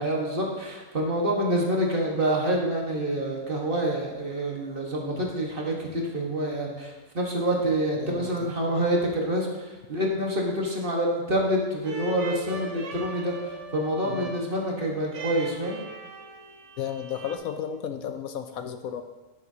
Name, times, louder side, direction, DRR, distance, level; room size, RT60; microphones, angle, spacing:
voice 1, 0.0-9.5 9.9-13.3 13.7-15.8, right 1 dB, 35° right, -1 dB, 1.5 m, -27 dB
voice 2, 8.0-8.5 14.0-14.3 16.8-19.0, left 9 dB, 70° left, 7 dB, 1.0 m, -34 dB
sound 1, 11.8-17.4, right 3 dB, 55° right, 1.2 m, -40 dB
12.0 x 8.3 x 2.8 m, 1.2 s
omnidirectional pair, 1.6 m